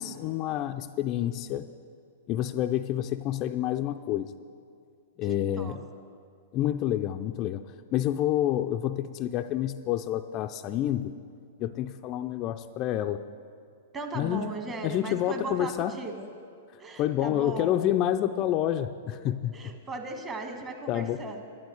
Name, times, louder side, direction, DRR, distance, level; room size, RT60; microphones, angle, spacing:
voice 1, 0.0-1.7 2.3-4.3 5.2-5.8 6.5-7.6 7.9-11.1 11.6-13.2 14.1-14.5 14.8-16.0 17.0-19.6 20.9-21.2, left 12 dB, 40° left, 7 dB, 0.4 m, -28 dB
voice 2, 5.2-5.8 13.9-16.3 16.8-17.8 19.5-21.4, right 3 dB, 25° right, 5 dB, 1.5 m, -37 dB
11.0 x 10.5 x 6.4 m, 2.3 s
hypercardioid pair, 125°, 0 cm